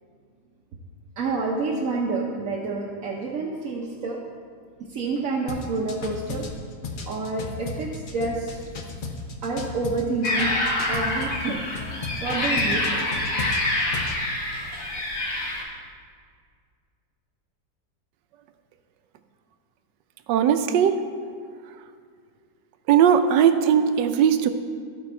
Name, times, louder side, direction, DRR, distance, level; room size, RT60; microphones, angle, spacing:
voice 1, 1.2-4.2 4.9-6.5 7.1-8.6 9.4-10.5 10.9-11.6 12.2-13.2, right 3 dB, 60° right, -2 dB, 1.0 m, -28 dB
sound 1, 5.5-11.4 11.7-14.2, left 3 dB, 75° left, 0.4 m, -35 dB
sound 2, 10.2-15.6, left 1 dB, 50° left, 1.7 m, -26 dB
voice 2, 20.3-21.0 22.9-24.5, right 8 dB, 75° right, 9 dB, 1.2 m, -18 dB
14.0 x 5.2 x 4.3 m, 2.1 s
omnidirectional pair, 2.0 m